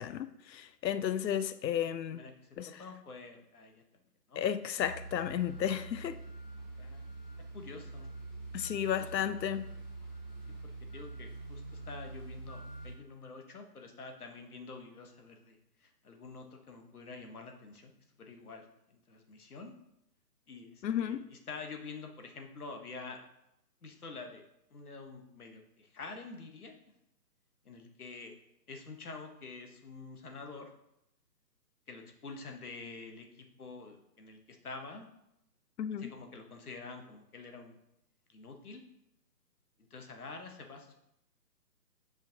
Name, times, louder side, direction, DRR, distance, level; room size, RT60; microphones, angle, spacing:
voice 1, 0.0-2.2 2.6-2.7 4.4-6.2 8.5-9.7 20.8-21.2 35.8-36.1, left 9 dB, 85° left, 0.6 m, -33 dB
voice 2, 2.1-3.8 4.3-4.4 6.8-7.1 7.5-8.1 9.0-9.1 10.9-17.9 18.2-19.7 20.5-23.2 23.8-24.4 24.7-26.8 27.6-28.3 28.7-30.7 31.9-35.1 36.0-37.8 38.3-38.8 39.8-41.0, left 4 dB, 60° left, 1.2 m, -47 dB
sound 1, 4.8-12.9, right 2 dB, 25° left, 1.3 m, -45 dB
7.7 x 5.0 x 2.7 m
hypercardioid pair, 170°, 50 cm